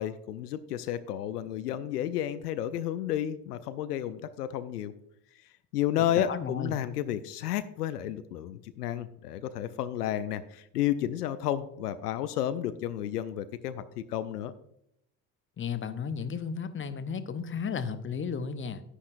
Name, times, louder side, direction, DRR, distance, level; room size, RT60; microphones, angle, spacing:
voice 1, 0.0-4.9 5.3-14.5, left 11 dB, 75° left, 13 dB, 0.6 m, -32 dB
voice 2, 6.2-6.7 15.6-18.8, left 6 dB, 25° left, 12 dB, 0.8 m, -34 dB
10.5 x 9.9 x 2.6 m, 0.77 s
figure-of-eight pair, 60°, 47 cm